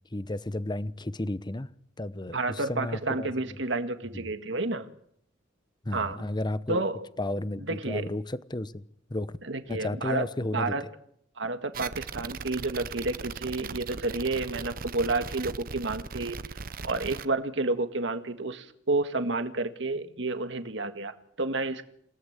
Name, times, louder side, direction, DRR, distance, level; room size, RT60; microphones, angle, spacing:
voice 1, 0.1-1.7 2.0-3.3 4.1-4.3 5.8-6.8 7.2-9.4 9.7-10.7, left 1 dB, 25° left, 0.9 m, -33 dB
voice 2, 2.3-4.9 5.9-6.2 6.7-7.0 7.7-8.1 9.4-10.3 10.5-10.8 11.4-16.4 16.8-21.8, right 2 dB, 70° right, 1.8 m, -30 dB
sound 1, 11.7-17.3, right 5 dB, 50° right, 0.9 m, -38 dB
28.0 x 17.5 x 8.2 m
head